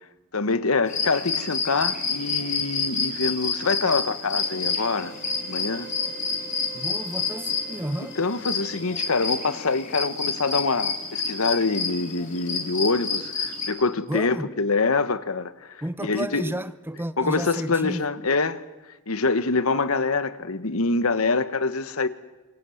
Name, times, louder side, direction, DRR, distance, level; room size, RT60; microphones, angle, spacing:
voice 1, 0.3-5.1 5.5-5.9 8.2-16.5 17.2-18.6 19.1-22.1, left 3 dB, 75° left, 1.3 m, -25 dB
sound 1, 0.9-13.7, left 5 dB, 35° left, 3.9 m, -29 dB
sound 2, 4.3-9.4, right 6 dB, 50° right, 5.5 m, -46 dB
voice 2, 6.7-8.2 14.1-14.5 15.8-18.0, right 1 dB, 10° right, 0.8 m, -32 dB
26.5 x 24.0 x 7.9 m
head